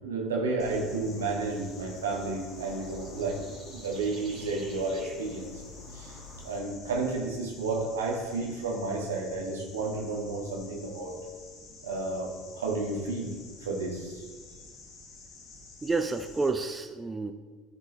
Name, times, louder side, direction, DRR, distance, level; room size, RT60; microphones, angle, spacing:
voice 1, 0.0-5.5 5.9-6.2 6.4-11.2 11.8-13.3 13.6-14.2, right 3 dB, 70° right, -1 dB, 1.6 m, -32 dB
sound 1, 0.6-16.5, left 3 dB, 45° left, 1.3 m, -49 dB
sound 2, 0.6-6.6, right 1 dB, 40° right, 1.8 m, -47 dB
voice 2, 15.8-17.3, right 3 dB, 15° right, 7 dB, 0.5 m, -29 dB
13.5 x 4.6 x 3.0 m, 1.5 s
figure-of-eight pair, 60°, 0 cm